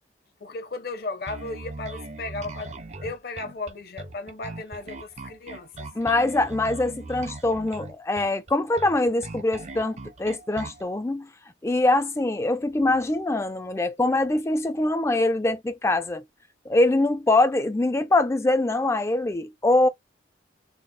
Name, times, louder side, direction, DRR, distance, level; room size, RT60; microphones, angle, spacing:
voice 1, 0.4-2.7 3.0-5.9, left 3 dB, 55° left, 0.8 m, -35 dB
Bass guitar, 1.3-10.8, right 2 dB, 40° right, 0.6 m, -39 dB
voice 2, 6.0-11.3 11.6-16.2 16.7-19.9, left 2 dB, 15° left, 0.3 m, -23 dB
4.1 x 2.0 x 2.2 m
head